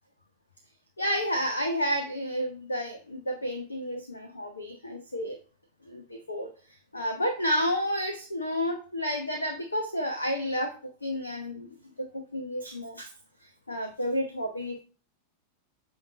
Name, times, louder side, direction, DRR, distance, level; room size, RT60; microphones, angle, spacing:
voice 1, 1.0-5.4 5.9-6.5 6.9-13.1 13.7-14.8, equal, 80° left, 4 dB, 0.9 m, -31 dB
8.7 x 3.0 x 5.7 m, 0.38 s
figure-of-eight pair, 90°, 0 cm